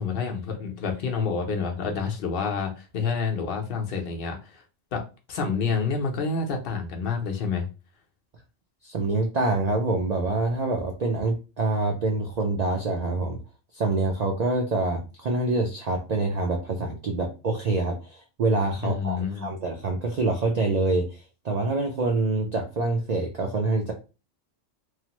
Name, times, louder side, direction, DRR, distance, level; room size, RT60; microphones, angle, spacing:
voice 1, 0.0-4.6 4.9-5.0 5.3-7.7 18.8-19.5, left 5 dB, 55° left, 2 dB, 0.8 m, -28 dB
voice 2, 8.8-13.4 13.7-23.9, right 2 dB, 75° right, 2 dB, 0.3 m, -26 dB
3.1 x 2.0 x 2.9 m, 0.31 s
omnidirectional pair, 1.3 m